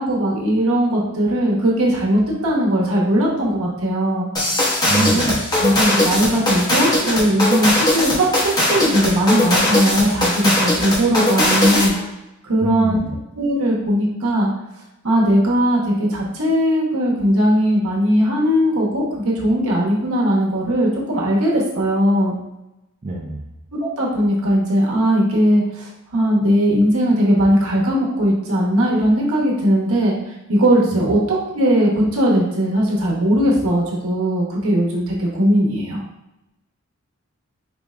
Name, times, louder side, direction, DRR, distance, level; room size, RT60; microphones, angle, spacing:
voice 1, 0.0-4.3 4.9-5.3 5.6-11.9 12.4-13.0 13.3-14.5 15.0-22.4 23.8-30.2 30.5-36.0, equal, 80° right, -3 dB, 1.2 m, -18 dB
sound 1, 4.4-12.0, left 1 dB, 20° left, 0.7 m, -19 dB
voice 2, 4.8-5.4 12.6-13.2 23.0-23.5 30.9-31.1, right 2 dB, 30° right, -3 dB, 0.4 m, -26 dB
4.8 x 2.5 x 3.3 m, 0.92 s
head